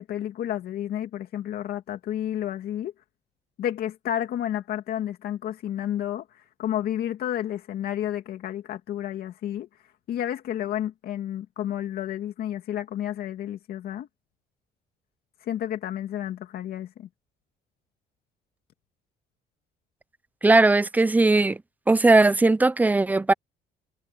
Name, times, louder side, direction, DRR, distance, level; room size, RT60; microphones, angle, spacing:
voice 1, 0.0-2.9 3.6-6.2 6.6-9.7 10.1-14.1 15.4-17.1, left 11 dB, 65° left, 2.4 m, -31 dB
voice 2, 20.4-21.6 21.9-23.3, right 2 dB, 10° right, 0.5 m, -18 dB
cardioid pair, 110°, 17 cm